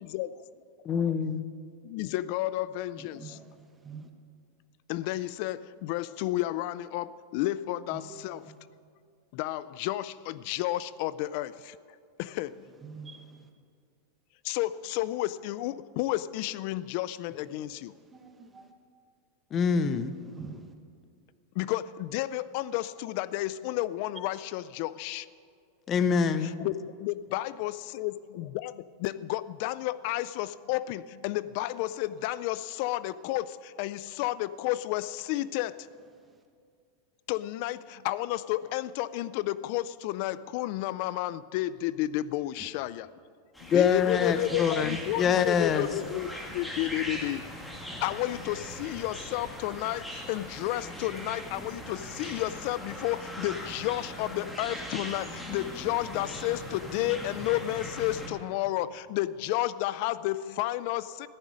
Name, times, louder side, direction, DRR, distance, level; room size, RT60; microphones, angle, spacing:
voice 1, 0.9-1.4 19.5-20.1 25.9-26.5 43.7-45.9, left 6 dB, 30° left, 12 dB, 0.7 m, -25 dB
voice 2, 1.8-3.4 4.9-8.5 9.3-11.8 12.2-12.7 14.4-17.9 21.6-25.3 26.4-35.9 37.3-43.1 43.6-47.4 48.0-61.3, left 15 dB, 55° left, 17 dB, 0.3 m, -32 dB
voice 3, 3.0-3.6 3.8-4.1 7.9-8.2 8.5-8.6 12.8-13.3 18.1-18.7 20.3-20.6 42.6-42.7, right 5 dB, 15° right, 5 dB, 1.0 m, -45 dB
sound 1, 43.5-58.3, equal, 5° left, 2.2 m, -40 dB
14.5 x 10.5 x 6.3 m, 2.2 s
supercardioid pair, 140°, 0 cm